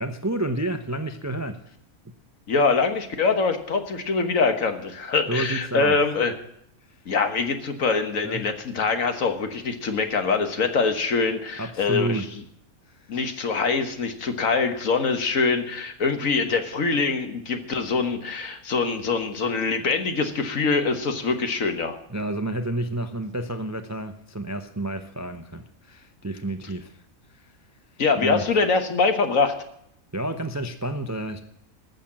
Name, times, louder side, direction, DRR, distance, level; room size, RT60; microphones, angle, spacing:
voice 1, 0.0-1.6 5.3-6.0 6.9-7.0 8.2-8.5 11.6-12.3 12.9-13.2 22.1-27.0 27.3-27.5 28.2-28.5 30.1-31.4, right 1 dB, 20° right, 8 dB, 0.4 m, -30 dB
voice 2, 2.5-6.3 7.1-12.2 13.1-22.0 28.0-29.5, left 4 dB, 65° left, 7 dB, 1.7 m, -24 dB
14.5 x 6.6 x 8.7 m, 0.73 s
omnidirectional pair, 1.5 m